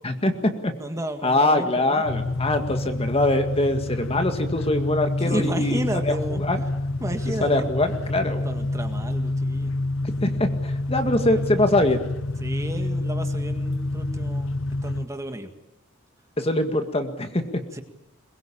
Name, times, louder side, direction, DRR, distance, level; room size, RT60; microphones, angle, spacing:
voice 1, 0.0-0.7 1.2-6.1 6.4-6.6 7.4-8.5 10.2-12.0 16.4-17.6, left 1 dB, 30° left, 7 dB, 2.0 m, -23 dB
voice 2, 0.8-2.2 5.2-6.4 7.0-7.7 8.4-9.7 10.9-11.5 12.4-14.6 14.8-15.5 17.7-17.8, right 1 dB, 15° right, 6 dB, 1.8 m, -32 dB
sound 1, 2.0-15.0, left 2 dB, 65° left, 0.9 m, -28 dB
22.0 x 21.5 x 8.8 m, 0.91 s
head